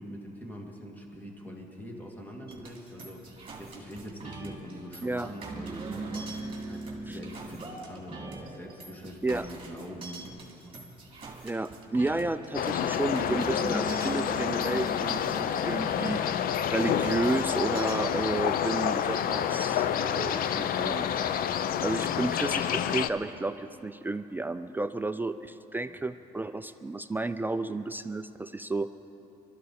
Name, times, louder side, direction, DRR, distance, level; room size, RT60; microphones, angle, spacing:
voice 1, 0.0-10.3 10.6-10.7 25.8-26.0, equal, 10° left, 0 dB, 2.2 m, -44 dB
sound 1, 2.5-18.0, right 3 dB, 30° right, 2.5 m, -41 dB
voice 2, 11.4-16.2 16.7-21.1 21.3-21.4 21.8-28.9, right 2 dB, 10° right, 10 dB, 0.4 m, -32 dB
sound 2, 12.5-23.1, left 9 dB, 60° left, 0.6 m, -28 dB
23.0 x 13.0 x 4.2 m, 2.9 s
cardioid pair, 110°, 17 cm